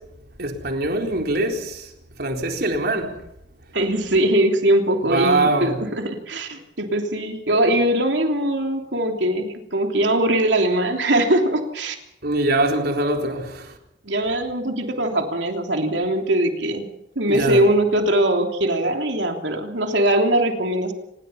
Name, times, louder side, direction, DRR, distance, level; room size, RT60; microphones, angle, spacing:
voice 1, 0.4-1.9 2.2-3.2 5.1-5.8 12.2-13.7 17.3-17.7, right 2 dB, 60° right, 4.1 m, -23 dB
voice 2, 3.7-12.0 14.0-20.9, right 1 dB, 85° right, 3.2 m, -21 dB
26.5 x 21.0 x 5.7 m
head